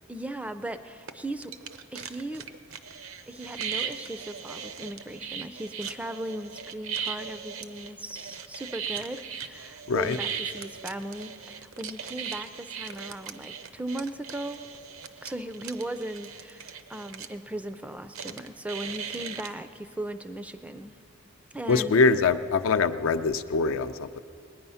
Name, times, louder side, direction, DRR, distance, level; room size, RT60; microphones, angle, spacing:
voice 1, 0.1-1.5 1.9-2.4 3.3-14.6 15.2-21.0 21.5-22.0, right 1 dB, 5° right, 10 dB, 0.4 m, -37 dB
sound 1, 1.1-1.2 1.4-17.4 18.1-19.5, right 7 dB, 70° right, 0.6 m, -38 dB
voice 2, 9.9-10.2 21.7-24.2, left 4 dB, 65° left, 11 dB, 0.5 m, -23 dB
19.5 x 9.4 x 5.6 m, 2.4 s
head